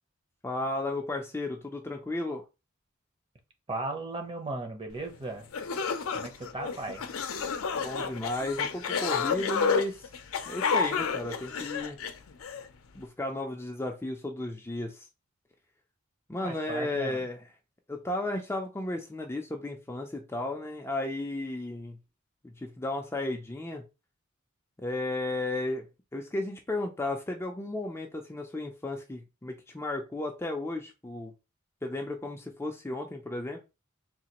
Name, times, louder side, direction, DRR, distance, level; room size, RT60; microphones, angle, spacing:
voice 1, 0.4-2.4 7.7-10.1 10.5-12.0 12.9-15.1 16.3-17.4 17.9-22.0 22.4-23.9 24.8-25.9 26.1-31.3 31.8-33.6, left 2 dB, 10° left, 0.4 m, -34 dB
voice 2, 3.7-5.5 6.1-7.1 16.4-17.2, right 2 dB, 25° right, 0.7 m, -36 dB
sound 1, 5.1-5.2 5.5-12.6, left 6 dB, 80° left, 0.5 m, -30 dB
3.7 x 2.5 x 2.9 m
head